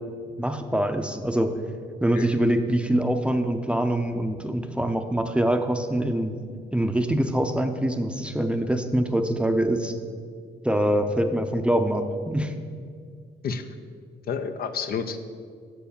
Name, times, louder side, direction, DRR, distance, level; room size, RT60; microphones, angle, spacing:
voice 1, 0.4-1.5 2.0-6.3 6.7-9.9 10.6-12.5, right 1 dB, 5° right, 7 dB, 0.6 m, -24 dB
voice 2, 14.3-15.2, left 6 dB, 60° left, 8 dB, 0.6 m, -30 dB
7.0 x 4.7 x 6.9 m, 2.1 s
cardioid pair, 80°, 18 cm